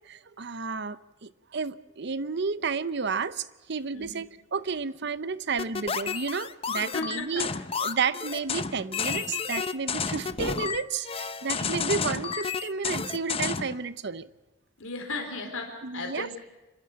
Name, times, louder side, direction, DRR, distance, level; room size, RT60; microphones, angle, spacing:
voice 1, 0.1-7.5 7.8-14.3 15.8-16.3, right 5 dB, 55° right, 15 dB, 0.7 m, -31 dB
sound 1, 5.6-13.8, left 5 dB, 30° left, 0.7 m, -31 dB
voice 2, 6.8-7.5 11.6-11.7 14.8-16.4, left 3 dB, 85° left, 3 dB, 4.1 m, -36 dB
27.0 x 13.0 x 8.5 m, 1.1 s
head